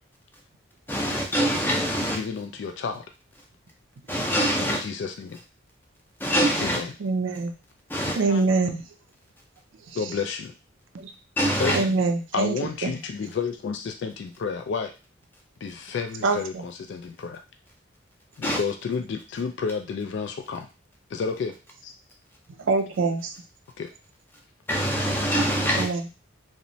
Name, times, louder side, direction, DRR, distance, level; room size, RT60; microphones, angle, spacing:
voice 1, 0.9-2.2 4.1-4.8 6.2-6.8 7.9-8.2 11.4-11.8 18.4-18.6 24.7-25.9, equal, 10° left, 0.5 m, -24 dB
voice 2, 2.0-3.0 4.6-5.4 6.6-6.9 8.3-8.4 9.9-10.5 11.6-11.9 12.3-14.9 15.6-17.4 18.4-20.7 21.1-21.5 21.8-21.9 23.8-23.9, left 5 dB, 65° left, 0.3 m, -31 dB
voice 3, 7.0-7.5 8.2-8.8 10.9-11.1 11.7-12.5 12.8-13.0 16.2-16.6 22.7-23.3 25.7-26.0, right 3 dB, 75° right, 0.4 m, -24 dB
2.9 x 2.1 x 2.6 m
head